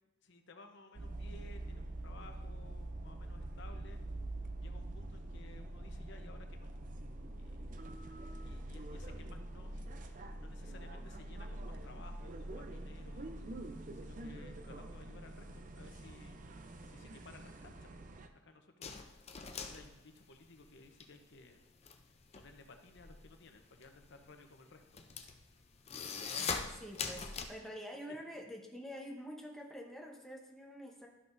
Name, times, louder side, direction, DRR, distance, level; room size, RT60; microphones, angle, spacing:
voice 1, 0.2-4.0 4.6-7.8 8.4-13.5 13.9-16.4 16.8-21.6 22.3-25.4, left 3 dB, 60° left, 6 dB, 0.8 m, -58 dB
sound 1, 0.9-18.3, right 1 dB, 40° right, 0.5 m, -45 dB
sound 2, 18.8-21.1 21.4-27.5, left 5 dB, 30° left, 0.5 m, -42 dB
voice 2, 26.4-31.1, equal, ahead, 0 dB, 0.9 m, -47 dB
12.5 x 5.8 x 2.6 m, 1.0 s
head